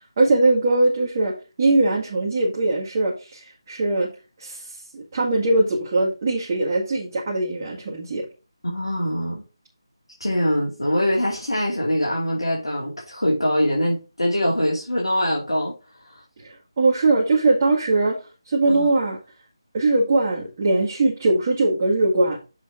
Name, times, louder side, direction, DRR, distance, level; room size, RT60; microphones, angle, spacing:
voice 1, 0.2-4.1 4.4-4.6 4.9-8.3 16.4-18.2 18.5-19.2 19.7-22.4, right 2 dB, 30° right, 2.0 m, -21 dB
voice 2, 8.6-9.4 10.2-15.8 16.0-16.2 18.7-18.9, equal, 75° left, 2.6 m, -23 dB
7.0 x 4.5 x 5.0 m
figure-of-eight pair, 155°, 3 cm